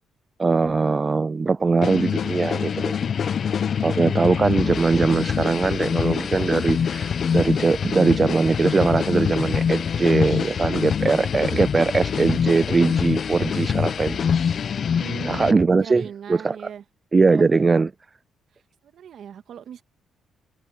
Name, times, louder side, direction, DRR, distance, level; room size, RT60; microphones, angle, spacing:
voice 1, 0.4-3.2 3.8-14.3 15.3-16.0 16.3-16.6 17.1-17.9, right 4 dB, 30° right, 0.4 m, -21 dB
sound 1, 1.8-15.5, left 7 dB, 55° left, 0.8 m, -25 dB
voice 2, 15.0-16.8 17.4-17.6 18.8-19.8, right 8 dB, 65° right, 1.8 m, -38 dB
cardioid pair, 90°, 0 cm